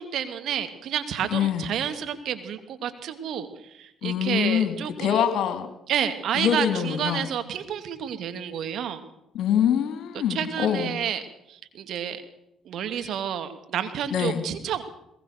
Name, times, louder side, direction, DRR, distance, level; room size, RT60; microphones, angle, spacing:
voice 1, 0.0-5.2 5.9-9.0 10.3-11.2 11.5-12.2 12.6-14.8, right 9 dB, 65° right, 8 dB, 2.6 m, -30 dB
voice 2, 1.3-1.7 4.0-5.7 6.3-7.3 9.3-11.0 14.1-14.4, left 9 dB, 65° left, 9 dB, 2.9 m, -24 dB
21.5 x 20.5 x 6.7 m, 0.81 s
hypercardioid pair, 55°, 0 cm